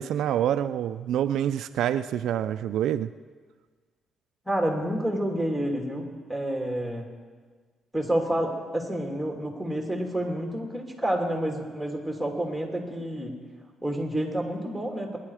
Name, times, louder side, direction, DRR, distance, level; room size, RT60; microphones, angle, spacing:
voice 1, 0.0-3.1, right 10 dB, 80° right, 11 dB, 0.4 m, -26 dB
voice 2, 4.5-7.1 7.9-13.4 13.8-15.2, right 1 dB, ahead, 1 dB, 2.9 m, -29 dB
21.5 x 11.0 x 4.9 m, 1.5 s
cardioid pair, 90°, 0 cm